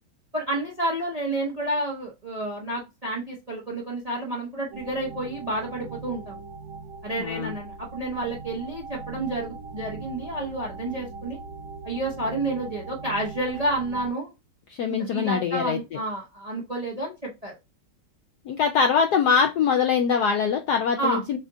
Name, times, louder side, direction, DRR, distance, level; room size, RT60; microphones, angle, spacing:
voice 1, 0.3-6.4 7.0-11.4 11.8-14.3 15.1-17.5 21.0-21.4, right 1 dB, 30° right, -2 dB, 0.7 m, -30 dB
sound 1, 4.7-14.1, right 4 dB, 90° right, 1.8 m, -40 dB
voice 2, 7.2-7.6 14.7-16.0 18.5-21.4, left 6 dB, 75° left, 4 dB, 0.9 m, -23 dB
7.0 x 2.5 x 2.6 m, 0.24 s
omnidirectional pair, 2.2 m